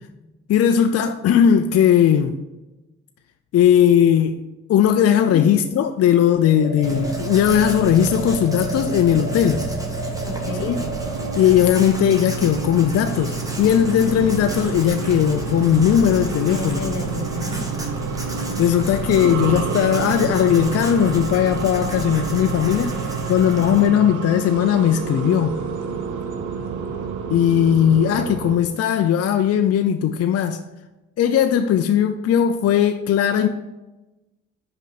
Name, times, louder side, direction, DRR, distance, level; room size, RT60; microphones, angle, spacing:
voice 1, 0.5-2.4 3.5-4.4 4.7-9.6 10.6-10.8 11.4-16.8 18.6-22.9 23.3-25.6 27.3-30.6 31.2-33.5, left 9 dB, 55° left, 0.5 m, -18 dB
sound 1, 6.4-11.5, right 2 dB, 35° right, 1.0 m, -32 dB
Writing, 6.8-23.9, right 3 dB, 10° right, 1.4 m, -30 dB
voice 2, 10.2-10.7 16.4-17.7 19.2-19.6 20.0-20.1, left 3 dB, 80° left, 1.1 m, -31 dB
sound 2, 10.4-28.6, right 5 dB, 75° right, 0.9 m, -30 dB
5.3 x 5.1 x 4.2 m
supercardioid pair, 70°, 30 cm